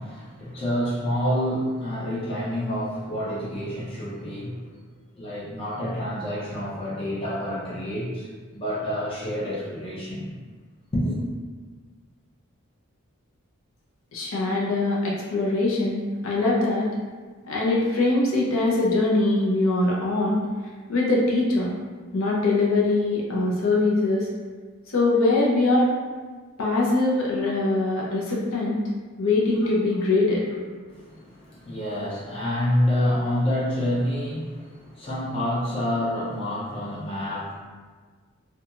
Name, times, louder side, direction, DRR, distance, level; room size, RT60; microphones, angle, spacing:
voice 1, 0.0-4.7 5.2-10.3 10.9-11.2 29.6-29.7 30.9-37.5, equal, 25° left, -8 dB, 0.5 m, -28 dB
voice 2, 14.1-16.9 17.4-20.4 20.9-21.7 22.1-24.3 24.9-25.9 26.6-28.8 29.2-30.4, left 2 dB, 70° left, -4 dB, 0.6 m, -22 dB
2.4 x 2.3 x 2.8 m, 1.5 s
head